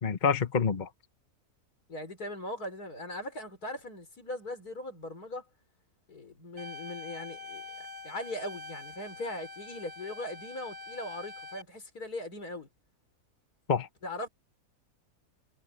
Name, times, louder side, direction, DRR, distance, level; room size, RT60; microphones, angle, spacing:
voice 1, 0.0-0.9 13.7-13.9, left 6 dB, 35° left, 1.2 m, -27 dB
voice 2, 1.9-5.5 6.1-12.7 14.0-14.3, left 1 dB, 75° left, 4.9 m, -40 dB
sound 1, 6.6-11.6, left 3 dB, 65° right, 3.6 m, -45 dB
omnidirectional pair, 1.6 m